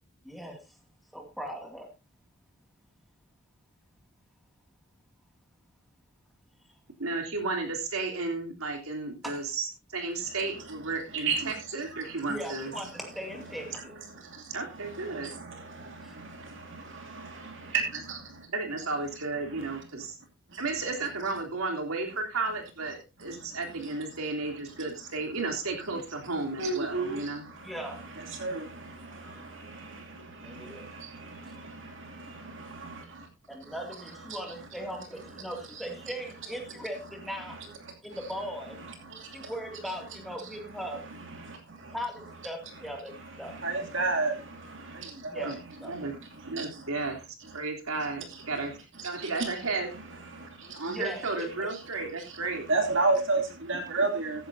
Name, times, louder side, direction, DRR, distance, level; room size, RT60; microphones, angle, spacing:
voice 1, 0.2-0.7 1.1-1.9 9.2-9.4 12.3-14.0 16.0-16.2 27.6-28.0 29.4-29.5 30.4-30.9 33.5-37.6 38.0-38.8 39.3-41.1 41.9-43.6 45.3-45.9 50.9-51.5, equal, ahead, 3 dB, 2.4 m, -39 dB
voice 2, 7.0-12.7 14.5-15.3 18.5-20.2 20.6-27.5 45.4-45.6 45.8-46.1 46.4-47.2 47.5-48.7 49.0-49.9 50.7-52.7 53.7-53.8, right 3 dB, 90° right, 3 dB, 3.3 m, -33 dB
voice 3, 26.6-27.1 28.4-28.5 43.6-44.3 45.4-45.5 52.7-53.4 53.7-54.3, right 3 dB, 60° right, 3 dB, 2.7 m, -26 dB
15.0 x 10.5 x 2.7 m, 0.25 s
head